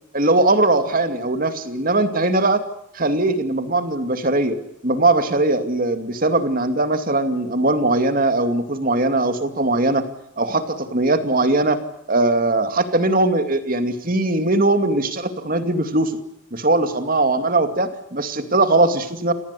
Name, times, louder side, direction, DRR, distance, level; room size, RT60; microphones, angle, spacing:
voice 1, 0.1-2.6 2.9-4.6 4.8-10.0 10.4-11.8 12.1-16.1 16.5-19.3, right 2 dB, 40° right, 9 dB, 2.4 m, -20 dB
28.5 x 19.5 x 8.4 m, 0.77 s
head